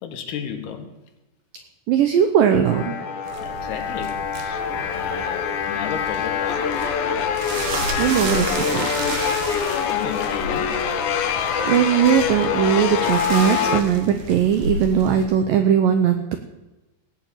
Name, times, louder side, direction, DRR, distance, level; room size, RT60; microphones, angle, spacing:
voice 1, 0.0-0.9 3.4-6.7 9.9-10.8, left 8 dB, 70° left, 6 dB, 2.9 m, -34 dB
voice 2, 1.9-3.0 8.0-8.9 11.4-16.4, right 9 dB, 90° right, 7 dB, 1.9 m, -19 dB
sound 1, 2.7-13.8, left 7 dB, 90° left, 1.7 m, -25 dB
sound 2, 3.2-15.3, right 2 dB, 65° right, 3.2 m, -33 dB
17.5 x 6.0 x 8.9 m, 1.0 s
omnidirectional pair, 5.0 m